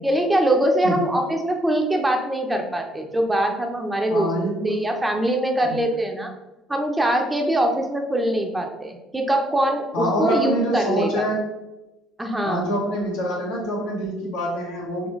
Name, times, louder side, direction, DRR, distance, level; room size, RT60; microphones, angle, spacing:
voice 1, 0.0-4.3 4.6-6.3 6.7-11.3 12.2-12.7, right 1 dB, 10° right, 3 dB, 0.6 m, -23 dB
voice 2, 4.1-4.8 5.6-5.8 9.9-11.5 12.4-15.1, equal, 85° left, -3 dB, 1.3 m, -25 dB
4.0 x 3.0 x 3.1 m, 1.0 s
supercardioid pair, 85°, 0 cm